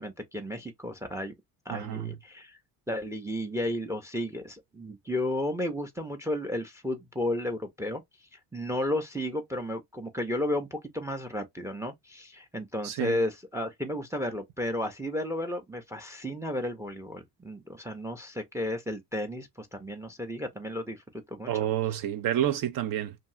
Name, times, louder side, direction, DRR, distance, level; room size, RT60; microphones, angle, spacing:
voice 1, 0.0-1.3 1.7-2.6 2.9-8.0 8.5-21.5, left 1 dB, 5° right, 0.5 m, -33 dB
voice 2, 1.7-2.1 12.8-13.2 21.5-23.2, right 11 dB, 55° right, 0.6 m, -29 dB
2.7 x 2.3 x 2.8 m
supercardioid pair, 80°, 41 cm